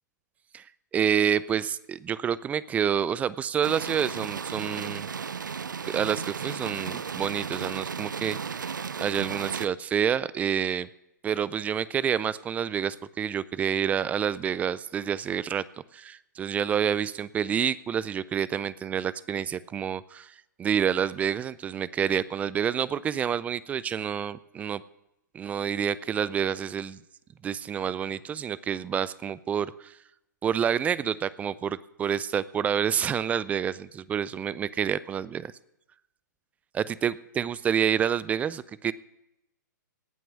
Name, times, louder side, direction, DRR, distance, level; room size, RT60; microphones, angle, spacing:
voice 1, 0.9-5.1 5.8-8.6 9.0-10.9 11.2-15.6 15.9-24.8 25.3-27.0 27.4-30.0 30.4-35.5 36.7-38.9, right 8 dB, 15° right, 19 dB, 0.4 m, -28 dB
sound 1, 3.6-9.7, right 6 dB, 80° right, 0.5 m, -34 dB
18.0 x 6.0 x 7.2 m, 0.86 s
figure-of-eight pair, 120°, 10 cm